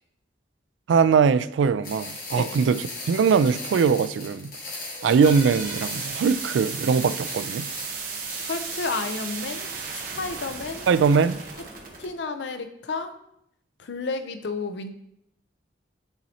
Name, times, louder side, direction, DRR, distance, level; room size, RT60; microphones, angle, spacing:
voice 1, 0.9-4.5 5.0-7.7 10.9-11.4, right 6 dB, 80° right, 0.3 m, -21 dB
sound 1, 1.8-9.0, left 2 dB, 50° left, 1.7 m, -38 dB
sound 2, 4.8-12.1, right 5 dB, 50° right, 1.0 m, -35 dB
voice 2, 8.5-10.9 12.0-13.2 13.8-15.0, left 4 dB, 70° left, 0.5 m, -32 dB
9.0 x 4.1 x 2.8 m
head